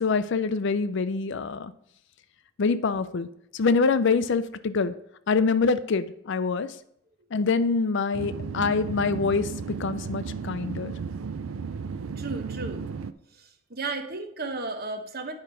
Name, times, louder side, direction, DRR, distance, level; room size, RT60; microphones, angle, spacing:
voice 1, 0.0-1.7 2.6-3.3 3.5-4.9 5.3-6.7 7.3-10.9, left 4 dB, 55° left, 13 dB, 0.4 m, -25 dB
sound 1, 8.1-13.1, right 5 dB, 70° right, 0.4 m, -34 dB
voice 2, 12.2-12.9 13.3-15.3, right 3 dB, 45° right, 5 dB, 1.0 m, -34 dB
8.8 x 4.8 x 5.4 m, 0.73 s
head